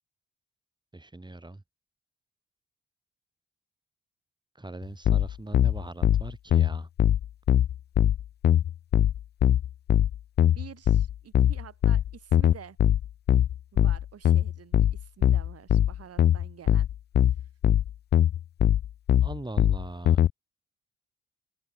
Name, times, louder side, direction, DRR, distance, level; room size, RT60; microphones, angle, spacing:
voice 1, 0.9-1.6 4.5-6.9 19.2-20.2, right 2 dB, 15° right, 7.7 m, -40 dB
sound 1, 5.1-20.3, left 11 dB, 35° left, 0.4 m, -22 dB
voice 2, 10.5-12.8 13.7-16.9, right 9 dB, 55° right, 7.4 m, -48 dB
open air
figure-of-eight pair, 40°, 30 cm